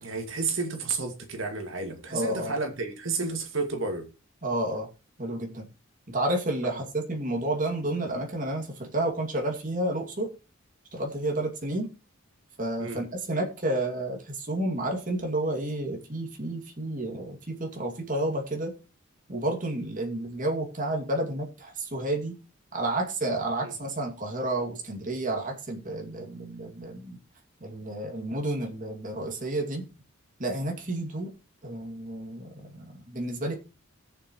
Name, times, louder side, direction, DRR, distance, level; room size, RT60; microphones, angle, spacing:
voice 1, 0.0-4.1 6.8-6.9 12.8-13.0 23.6-23.7, right 4 dB, 65° right, 2.2 m, -31 dB
voice 2, 2.1-2.5 4.4-4.9 5.2-5.6 6.1-10.3 10.9-11.9 12.6-18.7 19.3-22.4 22.7-27.2 27.6-29.8 30.4-31.3 31.6-33.6, right 1 dB, 40° right, 2.4 m, -30 dB
19.5 x 7.2 x 3.1 m
head